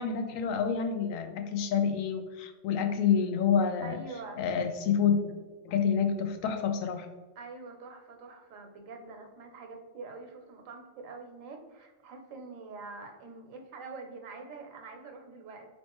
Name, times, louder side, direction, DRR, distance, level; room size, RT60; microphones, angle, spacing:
voice 1, 0.0-4.0 4.4-5.3 5.6-7.1, left 7 dB, 90° left, 7 dB, 1.0 m, -28 dB
voice 2, 3.8-4.4 7.4-15.7, right 3 dB, 80° right, 3 dB, 1.1 m, -45 dB
4.3 x 3.1 x 2.9 m, 1.3 s
omnidirectional pair, 1.3 m